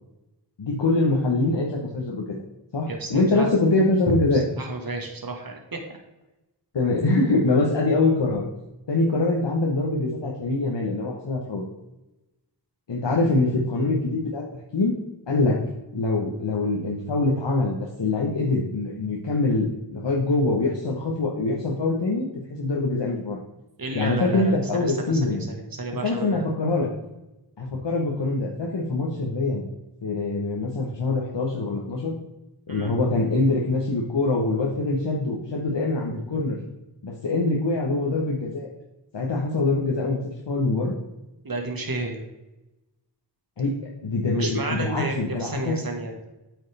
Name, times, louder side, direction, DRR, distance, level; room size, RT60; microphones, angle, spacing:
voice 1, 0.6-2.4 2.7-4.4 6.7-8.4 8.9-11.6 12.9-15.0 15.3-15.6 15.9-23.4 23.9-25.4 26.0-26.9 27.6-29.6 30.0-32.2 32.7-36.6 37.0-38.7 39.1-41.0 43.6-43.8 44.0-45.8, left 2 dB, 90° left, -3 dB, 1.1 m, -24 dB
voice 2, 2.9-3.5 4.6-5.8 23.8-26.5 32.7-32.9 41.4-42.2 44.3-46.2, right 2 dB, 55° right, 2 dB, 1.5 m, -32 dB
8.3 x 6.3 x 3.3 m, 0.99 s
wide cardioid pair, 45°, 42 cm